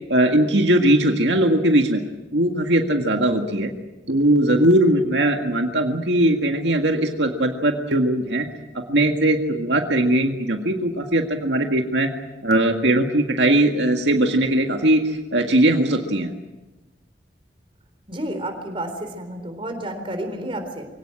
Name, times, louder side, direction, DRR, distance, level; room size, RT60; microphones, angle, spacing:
voice 1, 0.1-2.0 2.3-3.7 4.1-8.5 8.9-12.1 12.4-16.3, right 1 dB, 80° right, 3 dB, 1.9 m, -19 dB
voice 2, 18.1-20.9, right 1 dB, 30° right, 5 dB, 4.0 m, -30 dB
24.0 x 17.5 x 8.9 m, 1.1 s
head